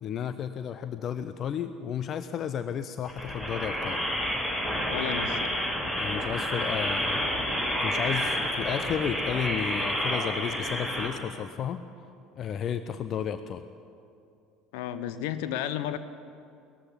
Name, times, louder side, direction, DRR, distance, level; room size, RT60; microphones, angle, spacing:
voice 1, 0.0-4.2 5.9-7.2 7.8-11.8 12.4-13.6, left 8 dB, 40° left, 11 dB, 0.7 m, -33 dB
sound 1, 3.1-11.1, equal, 20° left, 4.9 m, -29 dB
voice 2, 4.9-5.7 14.7-16.0, left 11 dB, 60° left, 12 dB, 1.0 m, -33 dB
18.5 x 14.5 x 9.9 m, 2.5 s
figure-of-eight pair, 65°, 0 cm